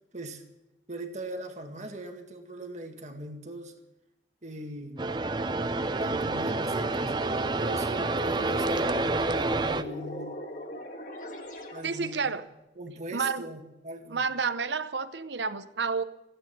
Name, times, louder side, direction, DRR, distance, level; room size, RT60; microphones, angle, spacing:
voice 1, 0.9-3.7 4.4-5.1 6.0-7.2 7.6-10.4 11.7-12.3 12.8-14.2, right 1 dB, 40° right, 4 dB, 2.0 m, -40 dB
sound 1, 5.0-9.8, right 2 dB, 25° right, 0.5 m, -28 dB
sound 2, 6.6-12.3, equal, 45° left, 1.9 m, -42 dB
voice 2, 11.8-12.4 13.1-13.4 14.1-16.0, right 5 dB, 75° right, 12 dB, 0.8 m, -30 dB
16.0 x 9.0 x 9.1 m, 0.94 s
head